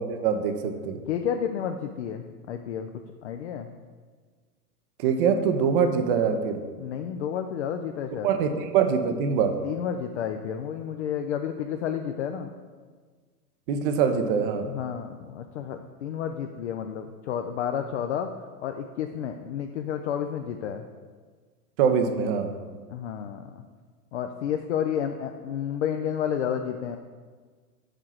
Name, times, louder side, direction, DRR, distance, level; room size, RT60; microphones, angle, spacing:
voice 1, 0.0-1.0 5.0-6.6 8.2-9.6 13.7-14.7 21.8-22.5, right 6 dB, 35° right, 7 dB, 0.6 m, -24 dB
voice 2, 1.1-2.9 3.2-3.7 6.8-8.3 9.6-12.5 14.6-18.3 18.6-20.8 22.9-23.6 24.1-27.0, left 8 dB, 50° left, 6 dB, 0.4 m, -31 dB
5.0 x 4.7 x 5.6 m, 1.5 s
figure-of-eight pair, 110°, 48 cm